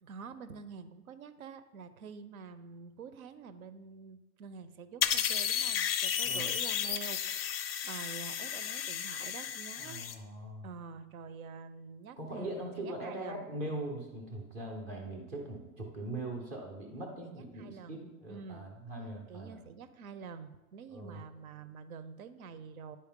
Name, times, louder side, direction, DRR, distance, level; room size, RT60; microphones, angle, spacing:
voice 1, 0.0-10.0 10.6-13.4 17.2-18.0 18.3-18.7 19.3-23.0, right 6 dB, 70° right, 13 dB, 0.7 m, -47 dB
sound 1, 5.0-10.1, left 9 dB, 45° left, 0.4 m, -33 dB
voice 2, 9.8-10.7 12.2-19.6 20.9-21.2, right 1 dB, 15° right, 0 dB, 0.5 m, -41 dB
9.7 x 4.3 x 3.7 m, 1.1 s
hypercardioid pair, 145°, 45 cm